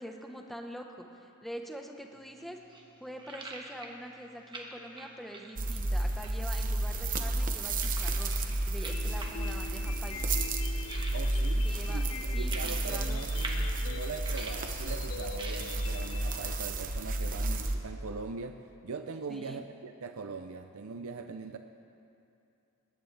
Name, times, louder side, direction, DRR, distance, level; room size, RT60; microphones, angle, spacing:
voice 1, 0.0-2.6 3.0-8.4 8.7-10.3 11.6-12.0 12.3-13.2 19.3-19.6, equal, ahead, 2 dB, 1.1 m, -44 dB
sound 1, 2.1-17.9, right 2 dB, 25° right, 1.3 m, -48 dB
sound 2, 5.6-17.8, right 2 dB, 40° right, 1.0 m, -32 dB
sound 3, 8.9-16.9, left 5 dB, 85° left, 0.7 m, -45 dB
voice 2, 11.1-21.6, right 4 dB, 80° right, 6 dB, 0.6 m, -41 dB
19.5 x 18.5 x 3.4 m, 2.7 s
head